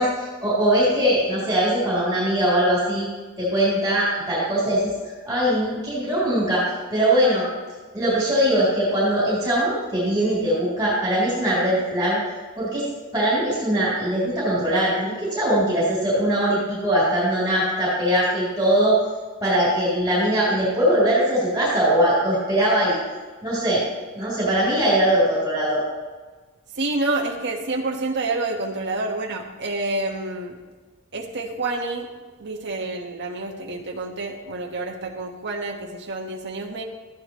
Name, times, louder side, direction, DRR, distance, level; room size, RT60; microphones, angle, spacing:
voice 1, 0.0-3.1 3.4-7.5 7.9-12.2 12.6-12.9 13.1-19.0 19.4-23.0 23.4-23.8 24.1-25.8, right 1 dB, 15° right, -7 dB, 3.9 m, -21 dB
voice 2, 26.8-30.6 31.1-32.1 32.4-36.8, right 2 dB, 55° right, 1 dB, 1.4 m, -28 dB
14.0 x 10.0 x 3.2 m, 1.4 s
head